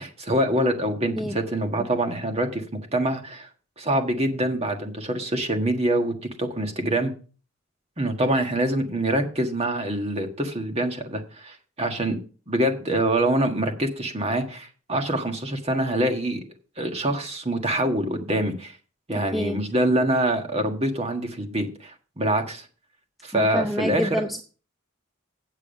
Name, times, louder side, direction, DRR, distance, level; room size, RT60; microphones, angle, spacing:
voice 1, 0.0-2.6 2.9-3.5 3.8-7.1 8.0-12.2 12.5-16.4 16.8-18.8 19.1-22.6 23.2-24.2, right 1 dB, 30° right, 4 dB, 1.6 m, -25 dB
voice 2, 19.1-19.6 23.3-24.4, equal, ahead, 5 dB, 0.5 m, -28 dB
8.8 x 7.4 x 5.3 m, 0.38 s
head